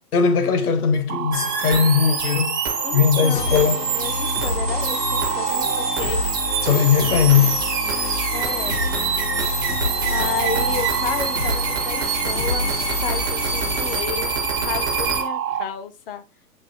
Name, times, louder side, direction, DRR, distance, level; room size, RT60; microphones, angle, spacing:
voice 1, 0.1-2.6 2.9-3.9 6.6-7.6, left 7 dB, 65° left, 1.0 m, -19 dB
sound 1, 1.1-15.6, right 10 dB, 60° right, 0.6 m, -30 dB
sound 2, 1.3-15.2, right 4 dB, 15° right, 0.4 m, -26 dB
voice 2, 2.8-6.2 8.3-8.8 10.1-16.2, left 7 dB, 35° left, 0.5 m, -32 dB
sound 3, 3.4-14.0, left 3 dB, 90° left, 1.2 m, -29 dB
7.3 x 2.8 x 2.6 m
figure-of-eight pair, 125°, 48 cm